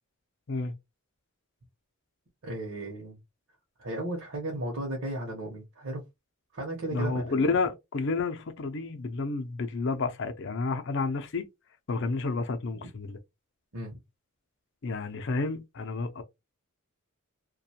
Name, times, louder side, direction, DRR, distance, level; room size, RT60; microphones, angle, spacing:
voice 1, 2.4-3.2 3.8-6.0 6.5-7.6 13.7-14.0, right 1 dB, 60° right, 0.8 m, -35 dB
voice 2, 6.9-11.4 11.9-13.2 14.8-16.2, left 3 dB, 55° left, 0.5 m, -30 dB
2.4 x 2.2 x 2.7 m
head